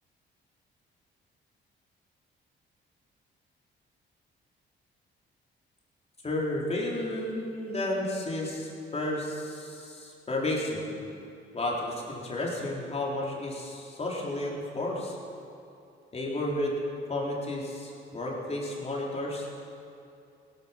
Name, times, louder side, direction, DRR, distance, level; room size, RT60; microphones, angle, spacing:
voice 1, 6.2-10.9 11.5-15.2 16.1-16.7 17.1-19.5, left 1 dB, 30° left, -3 dB, 3.8 m, -32 dB
17.0 x 12.5 x 5.9 m, 2.6 s
cardioid pair, 90°, 20 cm